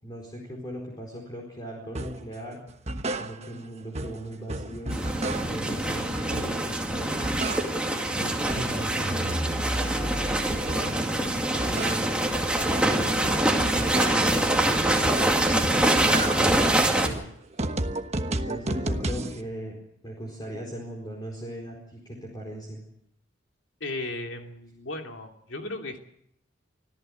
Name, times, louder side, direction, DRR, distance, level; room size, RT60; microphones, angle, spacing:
voice 1, 0.0-2.6 3.0-5.0 5.3-7.1 8.1-12.1 12.5-15.3 15.7-17.2 18.2-22.8, equal, 20° left, -1 dB, 4.5 m, -39 dB
sound 1, 2.0-2.3 2.7-3.7 3.9-5.7 6.2-6.8 7.1-8.0 8.3-11.1 11.4-14.4 14.9-15.5 15.8-19.4, right 1 dB, 35° right, 1.2 m, -33 dB
sound 2, 4.9-17.1, right 1 dB, 5° right, 2.3 m, -25 dB
voice 2, 23.8-26.0, left 2 dB, 80° left, 3 dB, 2.9 m, -35 dB
25.0 x 14.5 x 7.9 m, 0.72 s
head